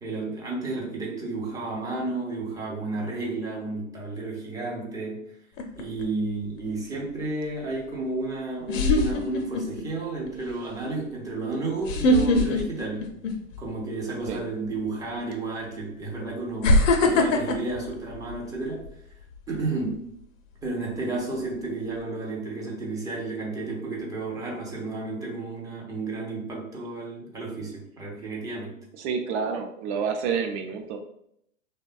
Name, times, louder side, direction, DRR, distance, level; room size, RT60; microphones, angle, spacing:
voice 1, 0.0-5.4 5.8-13.1 13.6-18.9 19.5-20.1 20.6-28.8, right 3 dB, 10° right, -3 dB, 0.3 m, -32 dB
sound 1, 5.6-6.0 7.9-8.0 8.7-9.8 10.3-10.5 11.8-13.7 14.0-14.3 15.3-15.4 16.6-18.9 19.3-19.6, left 2 dB, 70° left, 0.6 m, -22 dB
voice 2, 29.0-31.0, right 6 dB, 60° right, 5 dB, 0.6 m, -29 dB
2.6 x 2.1 x 2.3 m, 0.72 s
hypercardioid pair, 100°, 39 cm